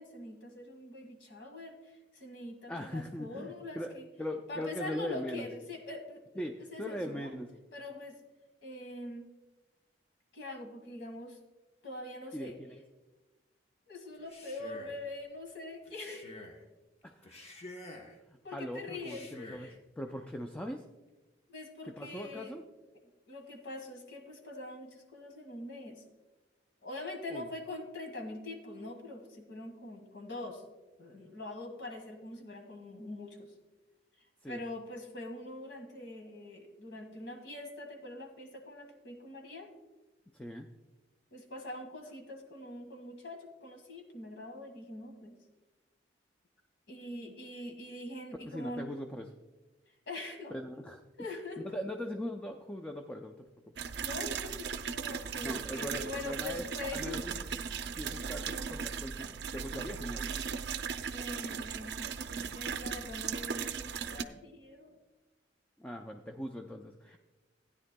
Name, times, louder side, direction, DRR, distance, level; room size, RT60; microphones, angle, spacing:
voice 1, 0.0-4.1 4.5-6.2 6.7-7.3 7.7-8.2 8.6-9.3 10.3-11.4 11.8-12.6 13.9-16.3 18.4-19.8 21.5-22.6 22.9-26.0 26.8-30.6 31.0-33.5 34.2-39.7 41.3-45.4 46.9-48.9 49.9-50.8 51.2-51.6 54.0-57.2 61.1-65.0 67.1-67.2, left 2 dB, 75° left, 4 dB, 1.7 m, -44 dB
voice 2, 2.7-3.9 4.2-5.5 6.4-7.5 12.3-12.8 17.0-17.7 18.3-20.8 21.9-22.6 27.3-27.5 34.4-34.6 40.3-40.7 48.5-49.3 50.5-51.0 51.6-53.5 55.4-56.7 56.9-57.6 57.9-60.4 65.8-67.2, equal, 5° left, 4 dB, 0.4 m, -40 dB
Male speech man speaking, 14.1-15.1 15.8-16.6 17.2-18.2 18.9-19.7, left 2 dB, 35° left, 0.9 m, -49 dB
sound 1, 53.8-64.2, right 6 dB, 65° right, 0.5 m, -37 dB
15.5 x 9.8 x 2.2 m, 1.1 s
head